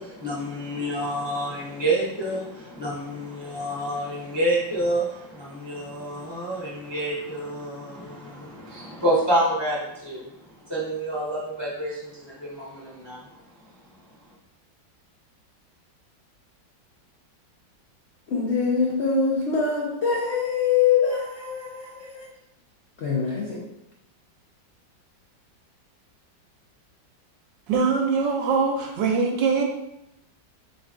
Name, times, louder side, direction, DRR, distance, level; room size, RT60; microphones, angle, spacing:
voice 1, 0.0-10.2 10.7-13.2, right 1 dB, 25° left, 0.5 m, -28 dB
voice 2, 18.3-22.3 23.0-23.6, left 5 dB, 80° left, 0.6 m, -24 dB
voice 3, 27.7-29.6, right 5 dB, 75° right, 1.3 m, -22 dB
4.4 x 3.9 x 2.4 m
omnidirectional pair, 2.0 m